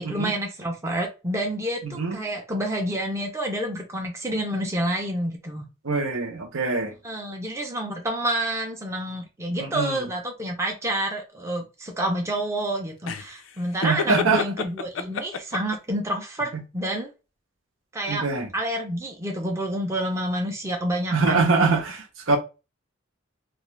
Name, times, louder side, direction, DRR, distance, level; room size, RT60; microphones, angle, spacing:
voice 1, 0.0-5.6 7.0-17.1 17.9-18.3 18.5-21.7, right 1 dB, 15° right, 0.5 m, -28 dB
voice 2, 1.8-2.2 5.8-6.9 9.6-10.1 13.8-14.4 16.5-16.6 18.1-18.5 21.1-22.0 22.3-22.4, right 4 dB, 90° right, 0.8 m, -23 dB
sound 1, 13.1-15.9, left 5 dB, 80° left, 0.4 m, -30 dB
2.4 x 2.4 x 3.1 m
head